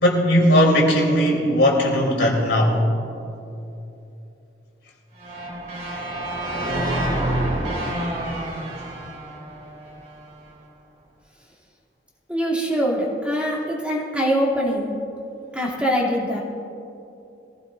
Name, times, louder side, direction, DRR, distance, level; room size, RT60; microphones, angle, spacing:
voice 1, 0.0-2.8, equal, 80° left, -1 dB, 3.2 m, -18 dB
sound 1, 5.2-10.2, right 1 dB, 50° right, 3.2 m, -27 dB
voice 2, 12.3-14.9 15.5-16.4, equal, 5° right, -5 dB, 2.6 m, -23 dB
23.0 x 15.5 x 2.5 m, 2.8 s
head